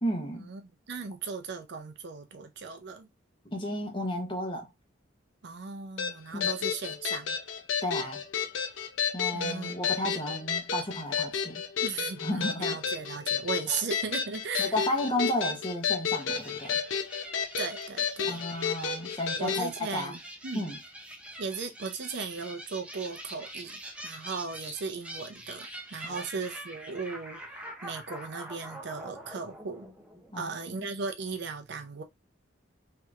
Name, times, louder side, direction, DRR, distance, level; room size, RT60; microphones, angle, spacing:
voice 1, 0.0-0.5 3.5-4.7 6.3-6.5 7.8-8.2 9.1-11.6 12.2-12.8 14.6-16.8 18.2-20.2 20.5-20.8 26.1-26.2 30.3-30.8, left 1 dB, 25° left, 0.9 m, -33 dB
voice 2, 0.9-3.1 5.4-7.4 9.3-9.7 11.8-14.8 17.6-18.4 19.4-20.2 20.4-20.7 21.4-29.9 30.4-32.0, right 5 dB, 60° right, 0.5 m, -37 dB
sound 1, 6.0-19.7, left 7 dB, 75° left, 0.6 m, -31 dB
sound 2, 16.1-30.7, right 1 dB, 5° right, 0.6 m, -45 dB
3.3 x 2.8 x 2.4 m
head